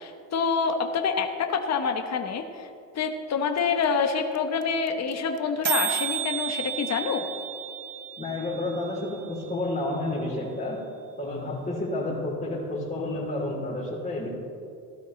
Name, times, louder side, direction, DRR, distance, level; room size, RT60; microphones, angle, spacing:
voice 1, 0.0-2.7 2.9-7.2, left 5 dB, 45° left, 5 dB, 1.1 m, -27 dB
sound 1, 3.6-3.7 3.8-3.9 4.1-4.4 4.6-4.7 4.9-5.1 5.4-5.5 5.6-9.6, right 12 dB, 50° right, 0.5 m, -32 dB
voice 2, 8.2-10.8 11.2-14.3, left 2 dB, 20° left, -9 dB, 3.5 m, -30 dB
16.5 x 12.5 x 3.2 m, 2.5 s
cardioid pair, 100°, 38 cm